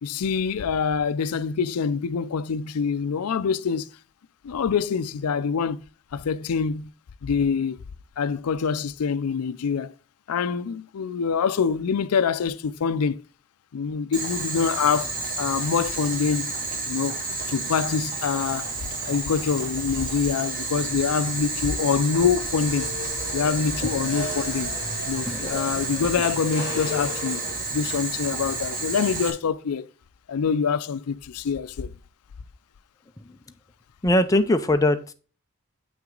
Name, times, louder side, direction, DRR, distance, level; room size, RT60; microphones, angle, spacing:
voice 1, 0.0-3.9 4.4-5.8 6.1-6.9 7.2-7.8 8.2-9.9 10.3-13.2 13.7-16.5 16.9-17.2 17.5-18.7 19.0-22.9 23.3-24.7 25.1-27.4 27.7-29.9 30.3-31.9, left 6 dB, 85° left, 0.4 m, -25 dB
Boiling, 14.1-29.3, right 3 dB, 40° right, 1.8 m, -31 dB
sound 1, 22.5-27.5, left 3 dB, 40° left, 2.1 m, -35 dB
voice 2, 25.2-25.7 26.0-26.1 33.3-33.4 34.0-35.1, left 1 dB, 15° left, 0.5 m, -22 dB
8.0 x 5.9 x 3.8 m
head